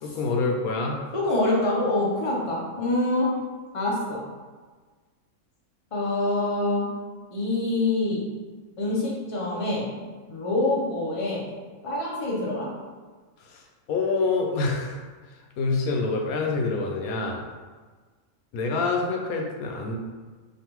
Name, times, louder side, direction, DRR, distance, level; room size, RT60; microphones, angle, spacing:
voice 1, 0.0-1.0 13.5-13.6 13.9-15.0 15.6-17.4 18.5-19.9, left 3 dB, 80° left, 1 dB, 1.1 m, -26 dB
voice 2, 1.1-3.3 3.7-4.2 5.9-6.9 7.3-8.2 8.8-9.9 10.3-11.4 11.8-12.7, left 2 dB, 30° left, -5 dB, 0.7 m, -25 dB
5.1 x 2.5 x 3.0 m, 1.4 s
omnidirectional pair, 1.5 m